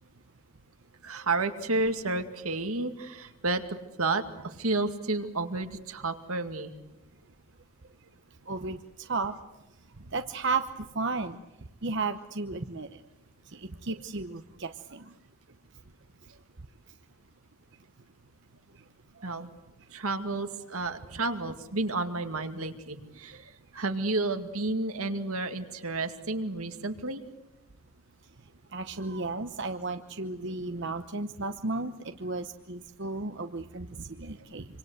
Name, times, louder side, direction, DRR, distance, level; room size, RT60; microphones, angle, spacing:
voice 1, 1.0-3.6 4.0-6.7 19.2-19.5 19.9-27.2, right 2 dB, 80° right, 7 dB, 2.2 m, -31 dB
voice 2, 8.5-9.3 10.1-11.4 11.8-12.9 13.5-15.0 28.7-34.7, right 3 dB, 55° right, 8 dB, 0.9 m, -34 dB
26.5 x 25.5 x 8.0 m, 0.96 s
head